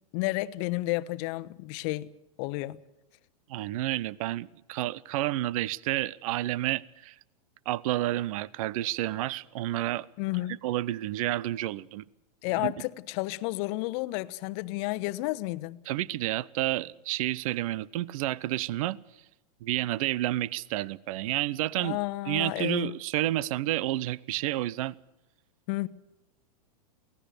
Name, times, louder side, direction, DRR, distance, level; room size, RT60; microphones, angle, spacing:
voice 1, 0.1-2.1 2.4-2.8 10.2-10.6 12.4-15.8 21.8-22.9 25.7-25.9, left 20 dB, 45° left, 1.0 m, -31 dB
voice 2, 3.5-7.2 7.7-10.1 10.6-12.0 12.6-12.7 15.9-19.0 19.6-22.0 22.3-24.9, right 15 dB, 60° right, 0.7 m, -30 dB
24.0 x 17.5 x 6.7 m
hypercardioid pair, 135°, 20 cm